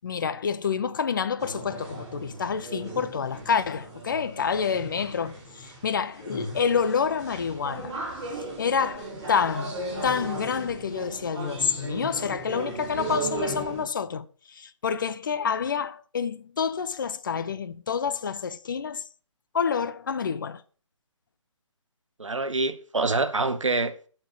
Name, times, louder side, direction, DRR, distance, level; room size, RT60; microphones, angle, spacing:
voice 1, 0.0-7.9 8.6-14.3 14.5-19.0 19.5-20.6, left 6 dB, 40° left, 0.6 m, -28 dB
sound 1, 1.4-13.8, right 2 dB, 20° right, 5.4 m, -37 dB
voice 2, 22.2-24.1, right 3 dB, 70° right, 1.1 m, -26 dB
11.0 x 4.4 x 6.2 m
figure-of-eight pair, 140°, 16 cm